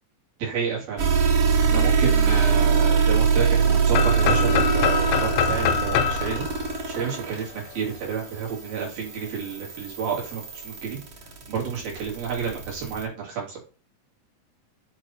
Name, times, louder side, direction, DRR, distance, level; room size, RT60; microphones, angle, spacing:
voice 1, 0.4-1.0 1.6-6.5 6.9-11.0 11.5-13.6, right 7 dB, 85° right, -4 dB, 5.2 m, -30 dB
sound 1, 1.0-13.0, right 6 dB, 55° right, 1.6 m, -24 dB
sound 2, 3.9-7.8, left 8 dB, 80° left, 1.9 m, -25 dB
8.4 x 4.2 x 4.4 m, 0.34 s
omnidirectional pair, 4.1 m